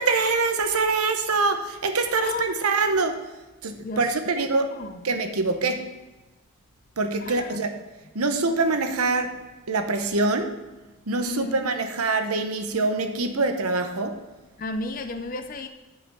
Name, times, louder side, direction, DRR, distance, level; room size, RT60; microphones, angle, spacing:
voice 1, 0.0-3.2 3.6-4.7 5.0-5.9 7.0-7.7 8.1-9.4 9.7-10.5 11.1-14.2, right 3 dB, 90° right, 7 dB, 0.9 m, -24 dB
voice 2, 2.2-2.7 3.8-4.1 4.3-5.0 7.2-7.6 11.2-11.6 14.6-15.7, left 3 dB, 40° left, 7 dB, 0.5 m, -34 dB
8.4 x 5.7 x 5.3 m, 1.1 s
head